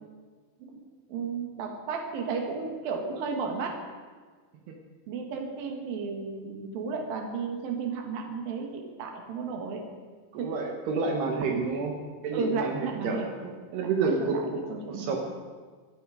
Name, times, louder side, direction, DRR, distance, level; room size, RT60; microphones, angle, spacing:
voice 1, 1.1-3.8 5.1-9.8 10.4-10.5 12.3-13.5 13.8-14.4 14.7-15.2, right 5 dB, 60° right, 2 dB, 3.4 m, -33 dB
voice 2, 10.3-12.0 12.2-13.3 13.7-14.6 14.9-15.2, right 4 dB, 75° right, 1 dB, 3.5 m, -29 dB
25.5 x 9.5 x 5.1 m, 1.5 s
omnidirectional pair, 4.8 m